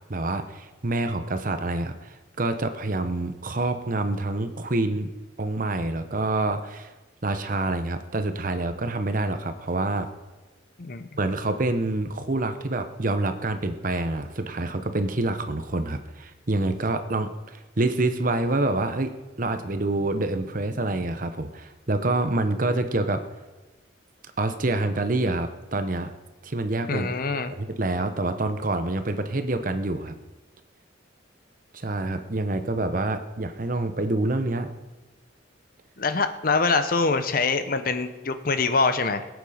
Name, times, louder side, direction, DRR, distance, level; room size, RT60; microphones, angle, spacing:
voice 1, 0.1-5.1 5.4-6.9 7.2-10.1 11.2-19.1 19.4-23.2 24.4-26.1 26.4-27.1 27.6-30.2 31.7-34.7, right 2 dB, 45° right, 8 dB, 0.9 m, -27 dB
voice 2, 26.9-27.5 36.0-39.3, left 4 dB, 50° left, 10 dB, 0.8 m, -24 dB
22.0 x 8.2 x 5.0 m, 1.2 s
head